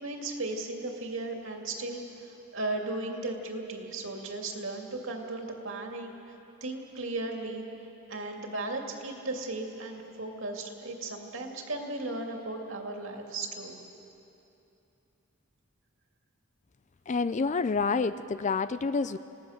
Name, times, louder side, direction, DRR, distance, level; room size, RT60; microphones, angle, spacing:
voice 1, 0.0-6.3 6.6-7.6 8.1-13.8, right 2 dB, 65° right, 2 dB, 2.5 m, -36 dB
voice 2, 17.1-19.2, left 4 dB, 35° left, 13 dB, 0.4 m, -28 dB
29.0 x 18.5 x 6.5 m, 2.9 s
head